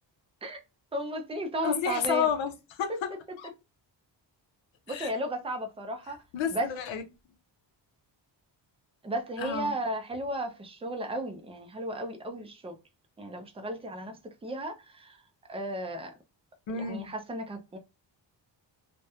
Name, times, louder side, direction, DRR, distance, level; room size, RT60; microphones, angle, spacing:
voice 1, 0.9-2.3 2.9-3.0 4.9-6.2 6.5-6.7 9.0-12.8 13.2-15.2 15.5-16.1 16.7-17.8, right 1 dB, 15° right, 0.3 m, -34 dB
voice 2, 1.6-3.5 4.9-5.1 6.3-7.0 9.4-9.7 16.7-17.1, left 7 dB, 80° left, 0.7 m, -31 dB
2.9 x 2.1 x 2.2 m
wide cardioid pair, 165°, 45 cm